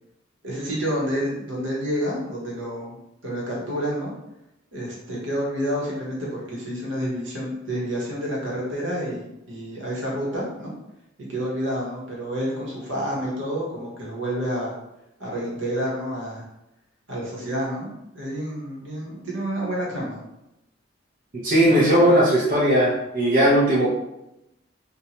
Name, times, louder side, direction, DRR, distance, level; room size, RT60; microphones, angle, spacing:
voice 1, 0.4-3.0 3.2-4.1 4.7-10.7 11.3-14.7 15.2-16.5 17.1-20.2, equal, 70° right, -4 dB, 1.0 m, -29 dB
voice 2, 21.4-23.9, equal, 45° right, -7 dB, 0.6 m, -18 dB
2.7 x 2.1 x 2.8 m, 0.87 s
head